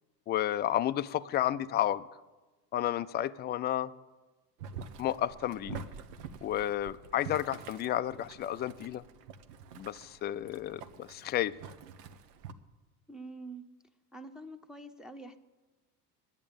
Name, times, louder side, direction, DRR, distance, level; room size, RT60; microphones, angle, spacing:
voice 1, 0.3-2.0 2.7-3.9 5.0-5.9 6.4-9.0 9.8-11.6, left 12 dB, 25° left, 14 dB, 0.4 m, -31 dB
Boiling, 4.6-12.5, right 6 dB, 70° right, 1.0 m, -47 dB
voice 2, 13.1-13.7 14.1-15.4, right 2 dB, ahead, 4 dB, 0.8 m, -45 dB
10.5 x 8.9 x 8.6 m, 1.2 s
hypercardioid pair, 80°, 49 cm